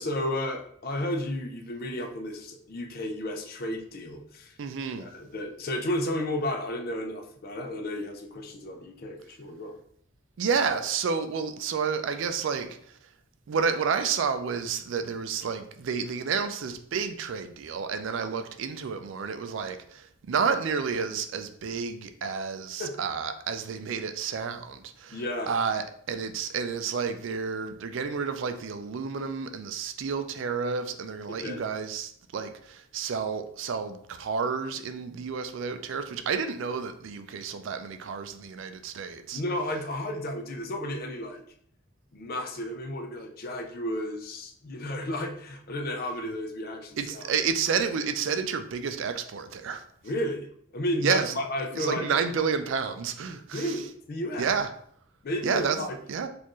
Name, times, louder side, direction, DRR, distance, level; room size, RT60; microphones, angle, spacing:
voice 1, 0.0-4.6 5.0-9.8 22.8-22.9 25.1-25.5 31.3-31.6 39.3-41.4 42.1-47.3 50.0-50.5 50.7-52.1 53.5-54.5 55.2-56.0, left 1 dB, 50° left, 0.5 m, -33 dB
voice 2, 4.6-5.1 10.4-13.0 13.5-39.4 47.0-49.8 51.0-51.4 51.7-53.8 54.4-54.7 55.4-56.3, right 6 dB, 70° right, 0.4 m, -30 dB
4.3 x 2.5 x 3.0 m
head